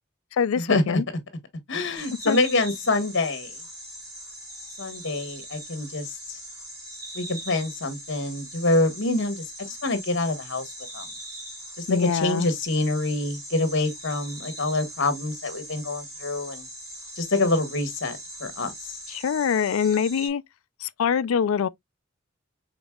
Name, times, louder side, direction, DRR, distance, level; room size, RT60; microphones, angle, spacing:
voice 1, 0.3-1.0 2.3-2.4 11.9-12.5 19.1-20.4 20.8-21.7, left 7 dB, 80° left, 0.4 m, -24 dB
voice 2, 1.7-3.6 4.8-6.4 7.1-11.0 11.8-16.7 17.1-19.0, left 2 dB, 60° left, 1.3 m, -26 dB
sound 1, 2.0-20.3, right 1 dB, 20° right, 2.3 m, -41 dB
5.2 x 4.0 x 2.2 m
head